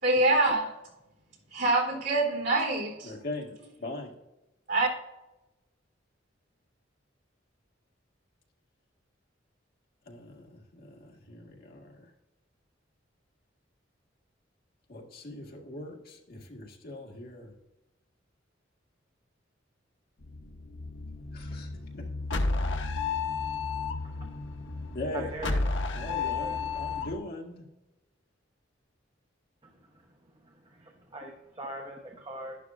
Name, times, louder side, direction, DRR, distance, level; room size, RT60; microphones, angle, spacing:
voice 1, 0.0-0.8 1.5-3.1 4.7-4.9, right 2 dB, 65° right, -1 dB, 3.5 m, -25 dB
voice 2, 3.0-3.5 3.8-4.1 10.0-12.1 14.9-17.5 21.3-22.0 24.9-25.3 25.9-27.7, left 2 dB, 55° left, 0 dB, 1.8 m, -40 dB
sound 1, 20.2-27.2, left 3 dB, 75° left, 0.9 m, -32 dB
voice 3, 25.1-25.6 26.0-26.6 29.6-30.1 30.3-32.6, right 1 dB, 25° right, 1 dB, 1.0 m, -42 dB
11.5 x 11.5 x 2.5 m, 0.97 s
head